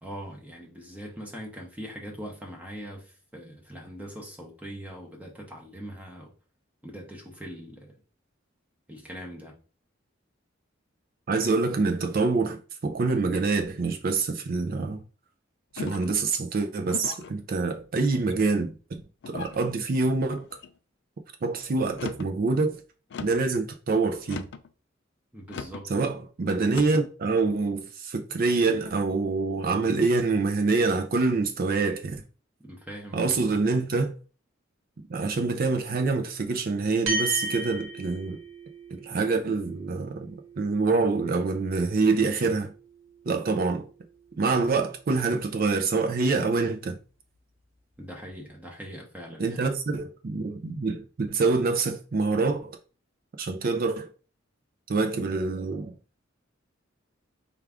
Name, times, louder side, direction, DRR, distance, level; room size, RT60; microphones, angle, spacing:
voice 1, 0.0-6.3 6.8-7.9 8.9-9.5 25.3-25.9 32.7-33.5 48.0-49.6, equal, 10° right, 0.7 m, -41 dB
voice 2, 11.3-15.0 15.7-20.4 21.4-22.8 23.2-24.5 25.9-32.2 33.1-34.1 35.1-38.4 38.9-42.7 43.3-43.9 44.4-47.0 49.4-52.8 53.4-54.1 54.9-55.9, right 3 dB, 50° right, 0.4 m, -26 dB
sound 1, 15.8-16.2 16.9-17.3 18.0-18.5 19.2-19.6 20.3-20.7 21.9-22.3 23.1-23.5 24.2-24.7 25.5-25.9 26.7-27.1, left 6 dB, 60° left, 0.4 m, -39 dB
sound 2, 37.1-45.7, right 1 dB, 80° right, 1.1 m, -38 dB
4.7 x 2.4 x 3.4 m
head